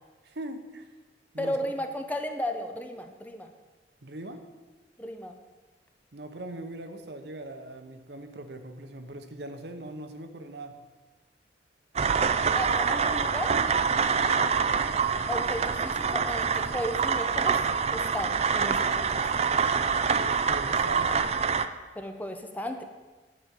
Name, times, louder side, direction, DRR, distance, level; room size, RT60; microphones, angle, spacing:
voice 1, 0.2-0.9 1.3-1.7 4.0-4.5 6.1-10.8 14.0-14.4 20.2-21.3, right 1 dB, 65° right, 7 dB, 0.9 m, -40 dB
voice 2, 1.4-3.5 5.0-5.4 12.5-13.5 15.3-17.6 17.9-19.2 21.9-22.8, equal, 10° left, 5 dB, 0.6 m, -34 dB
sound 1, 12.0-21.7, right 6 dB, 35° right, 0.4 m, -26 dB
9.9 x 5.2 x 7.7 m, 1.3 s
head